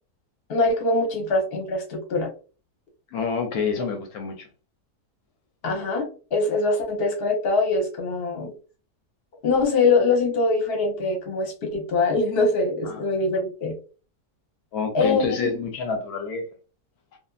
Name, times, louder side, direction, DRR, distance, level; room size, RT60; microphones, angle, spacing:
voice 1, 0.5-2.3 5.6-6.0 6.3-8.5 9.4-13.8 14.9-15.5, left 3 dB, 45° left, 1.0 m, -23 dB
voice 2, 3.1-4.5 12.9-13.0 14.7-16.5 17.1-17.2, left 5 dB, 80° left, 1.1 m, -28 dB
2.6 x 2.5 x 2.3 m
omnidirectional pair, 1.6 m